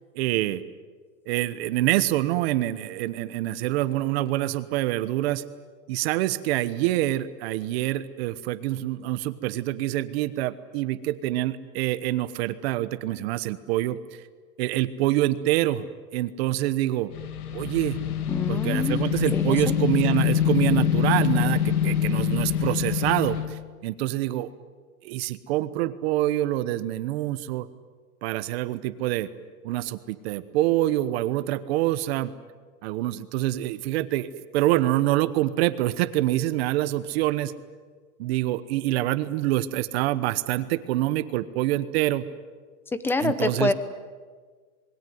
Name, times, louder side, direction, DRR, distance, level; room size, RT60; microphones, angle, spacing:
voice 1, 0.1-0.6 1.3-5.4 5.9-14.0 14.6-17.1 17.5-18.0 18.5-24.5 25.0-27.7 28.2-29.3 29.6-32.3 32.8-37.5 38.2-42.2 43.2-43.7, right 15 dB, 45° right, 14 dB, 1.2 m, -26 dB
sound 1, 17.1-23.5, left 9 dB, 80° left, 2.7 m, -25 dB
voice 2, 18.3-19.0 19.3-19.7 42.9-43.7, left 3 dB, 5° left, 12 dB, 0.8 m, -26 dB
26.5 x 21.5 x 9.4 m, 1.5 s
supercardioid pair, 155°, 44 cm